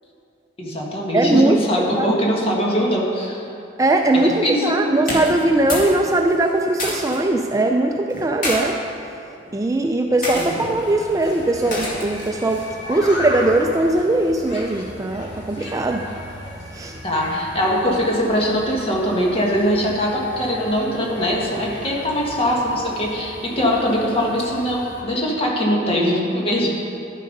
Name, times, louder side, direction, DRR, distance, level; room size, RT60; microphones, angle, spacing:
voice 1, 0.6-3.5 4.1-4.9 10.3-10.7 17.0-26.7, equal, 30° left, -2 dB, 1.8 m, -22 dB
voice 2, 1.1-1.6 1.9-2.1 3.8-8.8 9.5-16.0 16.7-17.0, right 2 dB, 20° right, 3 dB, 0.4 m, -20 dB
sound 1, 5.0-6.0 6.2-7.2 8.1-8.6 9.4-9.6 10.2-10.5 11.7-12.2, left 1 dB, 45° left, 2.4 m, -27 dB
sound 2, 10.1-25.0, left 1 dB, 70° left, 2.0 m, -36 dB
11.5 x 7.5 x 5.3 m, 2.6 s
head